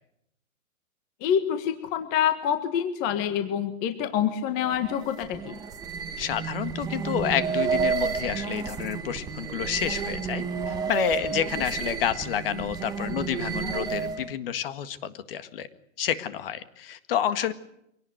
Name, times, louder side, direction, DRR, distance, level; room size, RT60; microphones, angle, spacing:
voice 1, 1.2-5.5, left 9 dB, 20° left, 8 dB, 1.6 m, -26 dB
sound 1, 4.6-14.3, right 6 dB, 10° right, 1.2 m, -31 dB
voice 2, 6.2-15.7 16.0-17.5, left 9 dB, 40° left, 12 dB, 1.9 m, -29 dB
25.0 x 18.5 x 9.3 m, 0.77 s
hypercardioid pair, 165°, 42 cm